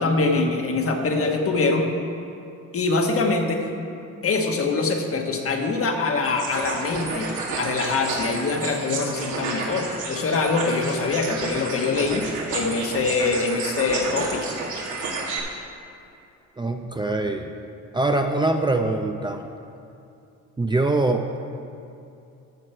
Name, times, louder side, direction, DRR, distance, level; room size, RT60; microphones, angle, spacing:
voice 1, 0.0-1.8 2.7-3.7 4.2-14.5, left 3 dB, 50° left, 3 dB, 1.4 m, -24 dB
sound 1, 6.2-15.4, right 3 dB, 80° right, 2.1 m, -31 dB
voice 2, 16.6-17.5 17.9-19.5 20.6-21.4, right 2 dB, 15° right, 4 dB, 0.6 m, -23 dB
14.0 x 6.2 x 4.5 m, 2.6 s
cardioid pair, 90°, 30 cm